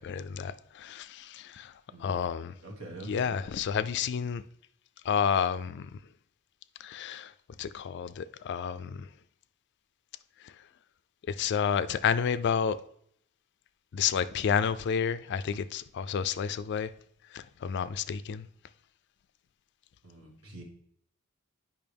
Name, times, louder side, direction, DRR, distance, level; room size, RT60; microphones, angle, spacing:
voice 1, 0.0-1.7 2.0-2.6 3.0-4.4 5.0-6.0 6.8-7.3 7.6-9.1 10.4-10.5 11.3-12.8 13.9-16.9 17.3-18.5, left 7 dB, 50° left, 0.3 m, -30 dB
voice 2, 1.9-2.2 2.6-3.4 20.0-20.6, right 2 dB, 75° right, 1.7 m, -45 dB
9.0 x 5.6 x 3.4 m
head